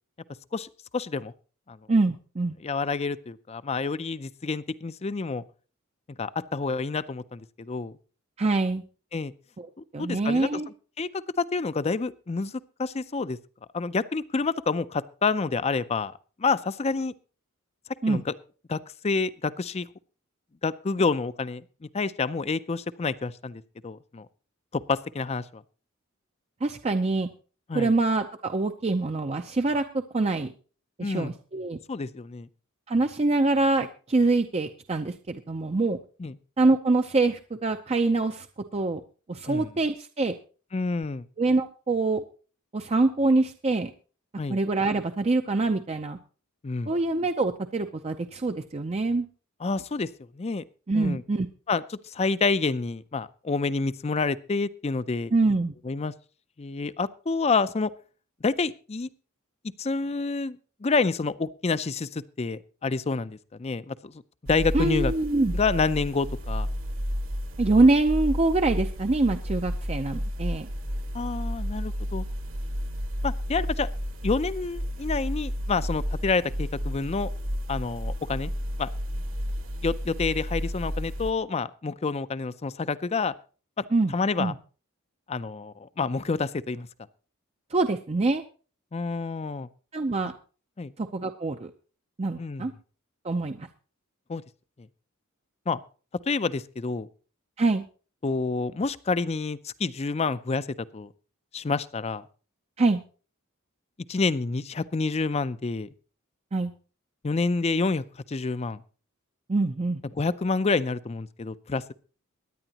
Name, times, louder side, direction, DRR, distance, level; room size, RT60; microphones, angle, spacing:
voice 1, 0.5-1.3 1.7-1.8 2.6-5.4 6.2-7.9 9.1-9.3 9.8-10.6 11.0-11.1 11.4-12.5 12.8-13.4 13.7-16.1 16.4-17.1 18.1-18.3 18.7-19.9 20.6-21.6 21.9-24.3 24.7-25.6 27.7-27.9 31.0-31.3 31.9-32.5 36.2-36.3 39.5-39.7 40.7-41.3 44.4-44.6 46.6-46.9 49.6-50.1 50.3-50.6 50.9-51.2 51.7-55.3 55.8-56.1 56.6-57.9 58.4-59.1 59.8-64.1 64.5-65.1 65.5-66.7 71.1-72.2 73.2-73.9 74.2-77.3 77.7-78.5 78.8-78.9 79.8-83.3 83.8-83.9 84.1-84.5 85.3-86.9 88.9-89.7 90.8-90.9 92.4-92.7 94.3-94.4 95.7-95.8 96.3-97.1 98.2-100.7 100.9-101.1 101.5-102.2 104.1-105.9 107.2-108.8 110.2-111.9, left 4 dB, 30° left, 15 dB, 0.5 m, -28 dB
voice 2, 1.9-2.5 8.4-8.8 9.6-9.7 9.9-10.7 18.0-18.2 26.6-27.3 27.7-30.5 31.0-31.8 32.9-36.0 36.6-38.5 38.7-39.0 39.3-40.4 41.4-42.2 42.7-43.9 44.5-46.2 46.9-49.3 50.9-51.5 55.3-55.7 64.7-65.5 67.6-70.7 83.9-84.1 84.4-84.5 87.7-88.4 89.9-90.3 91.0-91.7 92.2-92.7 93.2-93.7 97.6-97.8 102.8-103.0 106.5-106.7 109.5-110.0, right 3 dB, 30° right, 6 dB, 0.5 m, -25 dB
sound 1, 64.5-81.3, equal, 70° right, 1.8 m, -32 dB
23.0 x 9.9 x 2.9 m, 0.38 s
head